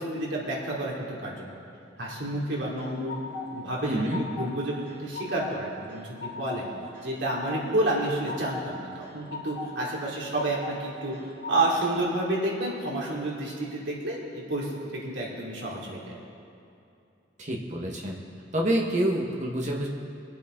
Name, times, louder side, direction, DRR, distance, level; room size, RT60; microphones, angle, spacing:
voice 1, 0.0-1.4 2.0-3.2 3.5-6.7 7.0-11.1 11.5-16.2, right 1 dB, 80° right, -5 dB, 3.1 m, -30 dB
sound 1, 2.5-3.5 3.8-4.6 4.9-5.5 5.9-6.6 6.9-7.6 8.0-8.7 9.0-9.7 10.1-10.8 11.1-11.9, left 4 dB, 85° left, 2.6 m, -38 dB
voice 2, 3.8-4.2 17.4-18.2 18.5-19.9, right 1 dB, 40° right, -1 dB, 1.7 m, -27 dB
23.0 x 8.3 x 4.0 m, 2.6 s
head